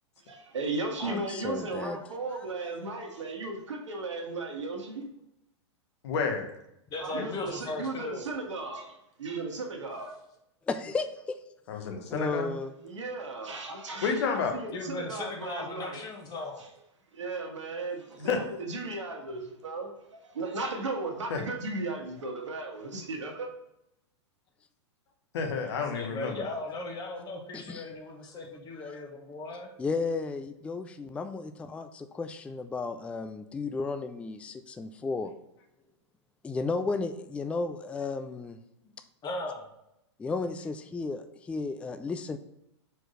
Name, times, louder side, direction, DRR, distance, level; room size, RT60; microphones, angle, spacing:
voice 1, 0.3-5.1 7.0-10.2 12.8-16.0 17.1-19.9 20.3-23.5, right 3 dB, 90° right, 1 dB, 1.5 m, -36 dB
voice 2, 1.0-2.0 10.7-11.4 12.1-12.7 27.5-27.8 28.9-29.0 29.8-35.4 36.4-38.6 40.2-42.4, left 4 dB, 10° left, 9 dB, 0.3 m, -34 dB
voice 3, 6.0-6.5 11.7-12.5 14.0-14.6 18.2-18.4 21.3-21.4 25.3-26.5, left 5 dB, 65° left, 3 dB, 1.4 m, -30 dB
voice 4, 6.9-8.2 14.7-16.6 25.9-29.7 38.8-38.9 39.2-39.7, left 2 dB, 25° left, 1 dB, 1.5 m, -37 dB
4.5 x 4.5 x 4.9 m, 0.81 s
hypercardioid pair, 115°, 15 cm